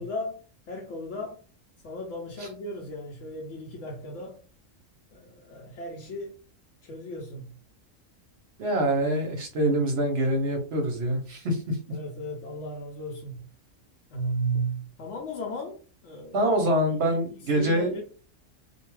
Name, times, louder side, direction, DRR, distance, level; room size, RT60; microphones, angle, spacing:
voice 1, 0.0-1.4 1.8-4.4 5.1-6.3 6.8-7.5 11.9-13.4 14.1-16.5 16.9-18.0, right 1 dB, 70° left, 0.9 m, -35 dB
voice 2, 8.6-11.8 16.3-18.0, right 1 dB, 60° right, 0.8 m, -25 dB
2.5 x 2.2 x 3.1 m
omnidirectional pair, 1.4 m